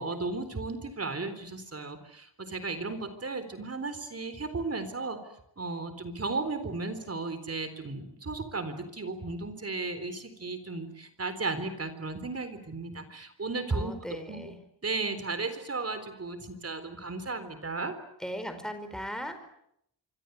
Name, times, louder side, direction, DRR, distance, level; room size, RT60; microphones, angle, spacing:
voice 1, 0.0-5.2 5.6-13.9 14.3-14.5 14.8-18.0, right 3 dB, 30° right, 10 dB, 3.9 m, -35 dB
voice 2, 13.7-14.6 18.2-19.4, equal, ahead, 8 dB, 4.6 m, -38 dB
26.5 x 25.0 x 8.2 m, 0.75 s
wide cardioid pair, 155°, 45 cm